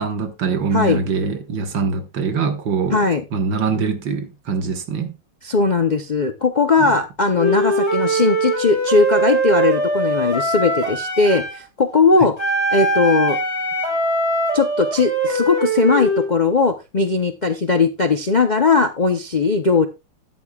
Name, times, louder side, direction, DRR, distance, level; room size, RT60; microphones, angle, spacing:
voice 1, 0.0-3.1 3.3-5.2 6.8-7.0 12.2-12.3, right 5 dB, 90° right, 2.2 m, -23 dB
voice 2, 2.9-3.2 5.4-12.3 12.7-13.4 14.5-19.9, left 4 dB, 55° left, 0.5 m, -18 dB
Wind instrument woodwind instrument, 7.4-11.6 12.4-16.3, right 1 dB, 15° left, 3.6 m, -21 dB
13.5 x 10.0 x 2.3 m
omnidirectional pair, 1.9 m